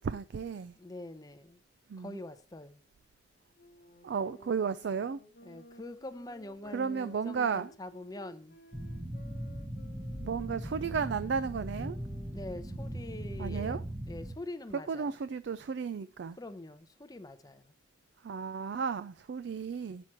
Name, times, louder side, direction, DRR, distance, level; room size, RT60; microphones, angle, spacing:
voice 1, 0.0-0.7 1.9-2.2 4.0-5.2 6.7-7.7 10.2-12.0 13.4-13.8 14.9-16.4 18.2-20.1, right 6 dB, 60° right, 0.4 m, -34 dB
voice 2, 0.8-1.6 2.0-2.8 5.4-8.6 12.3-15.1 16.4-17.7, left 1 dB, 20° left, 0.6 m, -44 dB
sound 1, 3.5-13.6, left 1 dB, 45° left, 1.1 m, -56 dB
sound 2, 8.7-14.3, right 1 dB, 15° right, 0.8 m, -39 dB
8.9 x 6.0 x 4.4 m
head